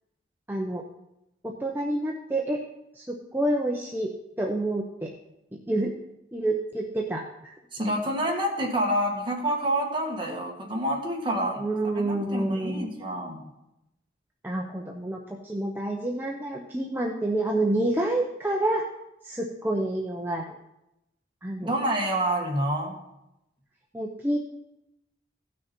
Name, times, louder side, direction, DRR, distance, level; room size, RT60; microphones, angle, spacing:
voice 1, 0.5-0.8 1.4-2.6 3.0-4.1 4.4-5.1 5.7-5.9 6.3-7.5 11.6-12.9 14.4-18.9 19.2-20.4 21.4-21.7 23.9-24.4, right 1 dB, 10° right, 0 dB, 0.8 m, -28 dB
voice 2, 7.7-13.4 21.6-23.0, right 1 dB, 25° right, -1 dB, 1.9 m, -28 dB
15.5 x 6.3 x 4.4 m, 0.87 s
head